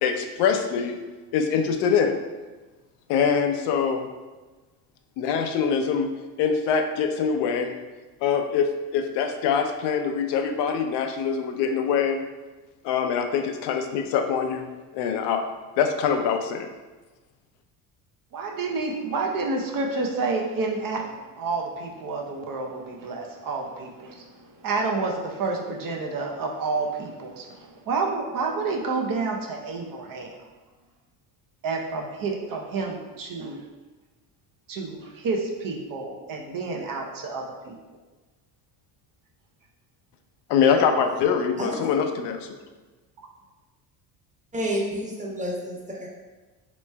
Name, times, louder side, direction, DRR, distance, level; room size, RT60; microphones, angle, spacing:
voice 1, 0.0-1.0 1.3-2.2 3.1-4.1 5.2-6.1 6.4-7.7 8.2-12.2 12.8-14.7 14.9-15.4 15.8-16.7 40.5-42.5, left 6 dB, 70° left, 6 dB, 0.5 m, -24 dB
voice 2, 18.3-30.4 31.6-33.6 34.7-37.7, right 3 dB, 50° right, 1 dB, 0.7 m, -29 dB
voice 3, 41.6-41.9 44.5-46.1, equal, 15° right, -2 dB, 1.0 m, -30 dB
3.1 x 3.1 x 3.3 m, 1.2 s
supercardioid pair, 80°, 44 cm